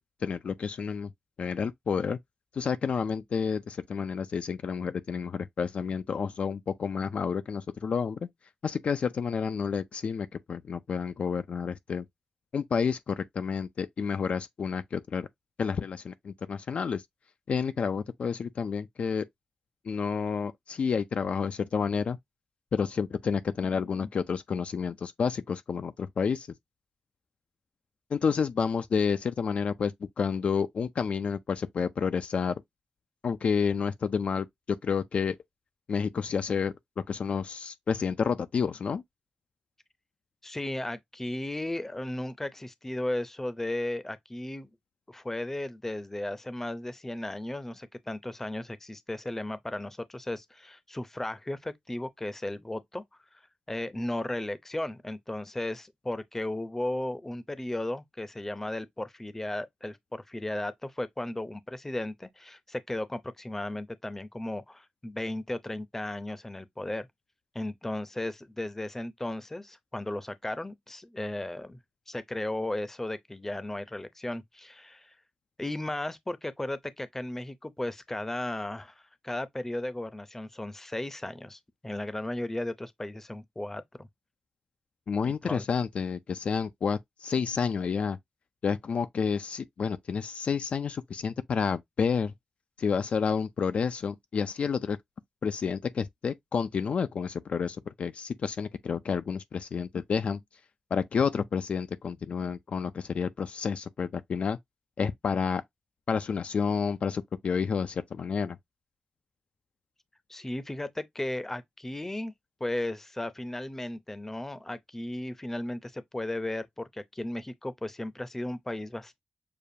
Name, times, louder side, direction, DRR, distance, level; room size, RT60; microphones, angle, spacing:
voice 1, 0.2-1.1 1.4-2.2 2.5-8.2 8.6-12.0 12.5-15.3 15.6-17.0 17.5-19.3 19.9-22.2 22.7-26.5 28.1-32.5 33.2-35.4 35.9-39.0 85.1-88.2 88.6-92.3 92.8-95.0 95.4-100.4 100.9-104.6 105.0-105.6 106.1-108.6, left 6 dB, 60° left, 0.4 m, -30 dB
voice 2, 40.4-44.7 45.1-53.0 53.7-67.1 67.5-71.8 72.1-75.1 75.6-84.1 85.2-85.6 110.3-112.3 112.6-119.2, left 1 dB, 15° left, 0.6 m, -35 dB
6.7 x 2.3 x 2.7 m
cardioid pair, 85°, 2 cm